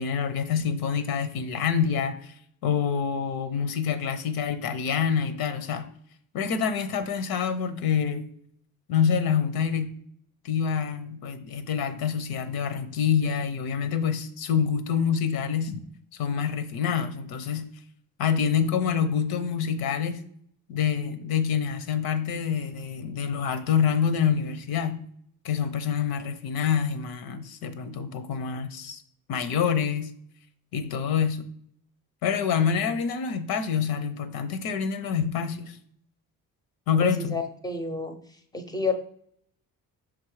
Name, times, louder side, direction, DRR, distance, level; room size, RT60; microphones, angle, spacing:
voice 1, 0.0-2.3 2.6-5.9 6.3-8.3 8.9-9.9 10.4-15.8 16.2-17.7 18.2-20.2 20.7-25.0 25.4-29.0 29.3-30.1 30.7-31.5 32.2-35.8 36.9-37.4, left 7 dB, 80° left, 11 dB, 0.8 m, -26 dB
voice 2, 37.0-38.1 38.5-38.9, left 3 dB, 10° left, 7 dB, 0.5 m, -29 dB
6.3 x 3.8 x 4.7 m, 0.64 s
cardioid pair, 170°, 36 cm